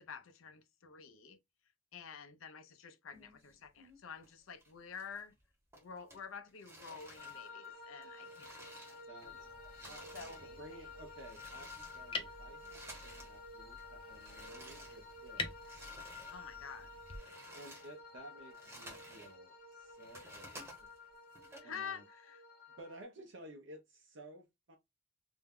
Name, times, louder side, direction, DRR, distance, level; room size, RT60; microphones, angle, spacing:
voice 1, 0.0-1.4 1.9-5.3 5.8-8.9 9.2-9.4 10.1-10.8 16.3-17.0 21.6-22.4, left 6 dB, 90° left, 0.6 m, -49 dB
sound 1, 3.1-4.3 4.6-5.4 5.7-9.3 9.6-13.4 13.7-16.4 16.8-19.3 19.7-21.6, right 1 dB, 15° right, 0.9 m, -55 dB
sound 2, 7.2-23.0, left 3 dB, 45° left, 0.9 m, -52 dB
voice 2, 9.1-9.5 9.8-15.8 17.5-20.7 21.6-22.0 22.8-24.8, right 1 dB, 65° right, 0.6 m, -55 dB
sound 3, 9.2-17.2, left 3 dB, 25° left, 0.4 m, -48 dB
2.6 x 2.2 x 3.5 m
head